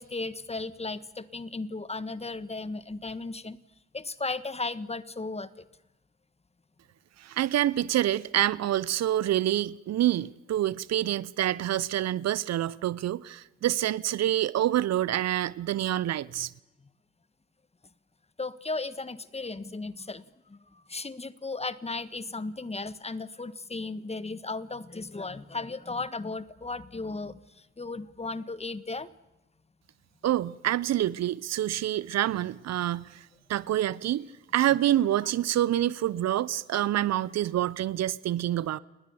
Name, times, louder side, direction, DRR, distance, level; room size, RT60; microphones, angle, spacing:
voice 1, 0.0-3.6 3.9-5.6 18.4-29.1, left 3 dB, 20° left, 1.4 m, -36 dB
voice 2, 7.2-16.5 30.2-34.3 34.5-38.8, right 12 dB, 55° right, 0.8 m, -27 dB
29.5 x 19.5 x 7.1 m
hypercardioid pair, 50°, 31 cm